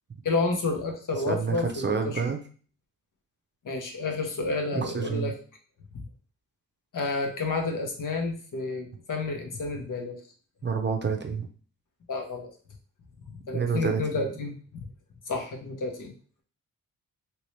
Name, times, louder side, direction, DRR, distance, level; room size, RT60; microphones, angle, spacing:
voice 1, 0.2-2.3 3.6-5.3 5.9-6.0 6.9-10.2 12.1-12.5 13.5-14.9 15.3-16.1, left 3 dB, 55° left, 3 dB, 1.0 m, -30 dB
voice 2, 1.3-2.4 4.7-5.3 10.6-11.5 13.5-14.3, right 5 dB, 30° right, 4 dB, 0.6 m, -28 dB
3.0 x 2.9 x 3.2 m, 0.40 s
cardioid pair, 55°, 37 cm